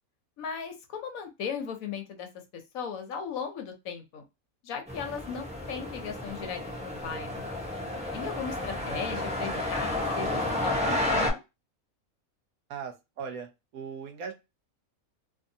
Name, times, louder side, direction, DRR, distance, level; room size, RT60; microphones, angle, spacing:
voice 1, 0.4-2.3 2.5-4.2 4.6-7.5 8.1-9.9 10.2-11.4, left 6 dB, 75° left, 5 dB, 1.1 m, -37 dB
sound 1, 4.9-11.3, left 1 dB, 5° right, 0.6 m, -31 dB
voice 2, 12.7-14.3, right 6 dB, 80° right, 5 dB, 1.1 m, -39 dB
2.7 x 2.6 x 2.6 m, 0.24 s
omnidirectional pair, 1.5 m